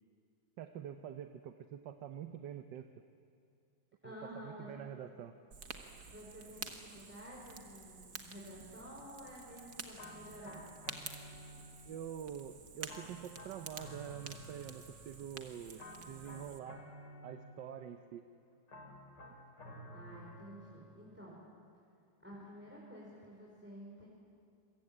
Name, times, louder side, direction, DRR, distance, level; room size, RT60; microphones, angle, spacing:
voice 1, 0.6-2.9 4.0-5.4 11.9-16.8 17.2-18.2, right 9 dB, 85° right, 8 dB, 1.6 m, -46 dB
voice 2, 4.0-4.7 6.1-10.6 19.9-21.4 22.2-24.1, equal, 5° right, -5 dB, 4.7 m, -51 dB
Fire, 5.5-16.6, right 5 dB, 60° right, 2.2 m, -50 dB
sound 1, 10.0-12.0 12.9-15.3 15.8-17.9 18.7-21.1, equal, 75° left, 3.8 m, -53 dB
27.5 x 23.5 x 8.8 m, 2.5 s
omnidirectional pair, 1.9 m